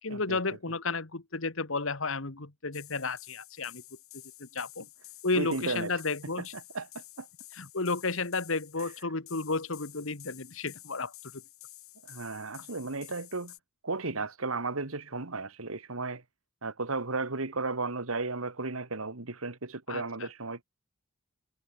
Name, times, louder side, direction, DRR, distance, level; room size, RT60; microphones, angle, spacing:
voice 1, 0.0-3.8 4.1-4.9 5.2-6.5 7.5-11.4 19.9-20.3, left 3 dB, 65° left, 1.7 m, -33 dB
sound 1, 2.7-13.6, left 17 dB, 90° left, 2.4 m, -51 dB
voice 2, 5.3-5.9 6.7-6.9 7.2-7.3 12.0-13.5 13.8-16.2 16.6-20.6, right 3 dB, 80° right, 2.0 m, -34 dB
head